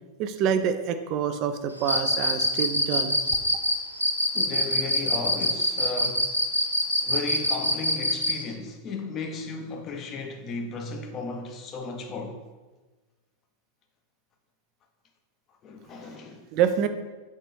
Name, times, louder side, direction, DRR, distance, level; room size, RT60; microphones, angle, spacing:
voice 1, 0.2-3.2 16.5-16.9, right 8 dB, 40° right, 0.3 m, -26 dB
Cricket, 1.8-8.4, left 1 dB, 90° left, 0.4 m, -24 dB
voice 2, 4.3-6.3 7.0-12.4 15.6-16.4, left 3 dB, 30° left, 0.5 m, -35 dB
4.2 x 3.3 x 3.4 m
figure-of-eight pair, 90°, 0 cm